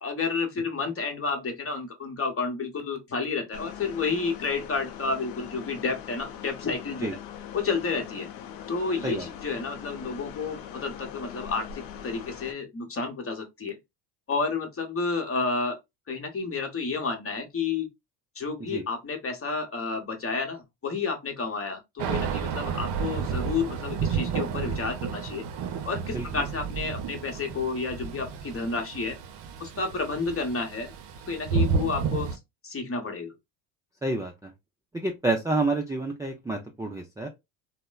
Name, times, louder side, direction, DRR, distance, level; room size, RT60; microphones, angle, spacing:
voice 1, 0.0-7.2 7.5-8.3 8.7-13.8 14.3-15.8 16.1-17.9 18.4-25.4 25.8-29.2 29.6-30.9 31.3-32.4 32.6-33.3, left 4 dB, 30° left, 1.0 m, -30 dB
sound 1, 3.5-12.5, left 9 dB, 85° left, 0.6 m, -41 dB
Thunder / Rain, 22.0-32.4, right 6 dB, 60° right, 0.7 m, -31 dB
voice 2, 26.1-26.4 34.0-34.5 34.9-37.3, right 2 dB, 5° right, 0.4 m, -29 dB
2.9 x 2.2 x 2.2 m
supercardioid pair, 70°, 48 cm